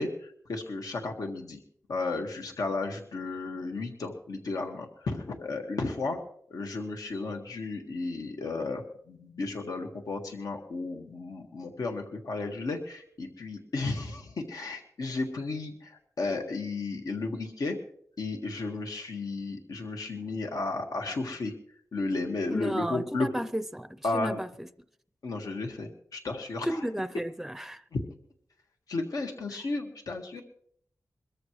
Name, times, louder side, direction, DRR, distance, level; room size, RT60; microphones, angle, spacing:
voice 1, 0.0-1.6 1.9-6.2 6.5-17.8 18.2-21.5 21.9-23.3 24.0-24.4 25.2-26.8 27.9-28.0 28.9-30.4, left 3 dB, 85° left, 1.7 m, -33 dB
voice 2, 22.5-24.7 26.6-27.8, equal, 5° right, 0.5 m, -33 dB
23.0 x 13.5 x 3.2 m
wide cardioid pair, 105°, 6 cm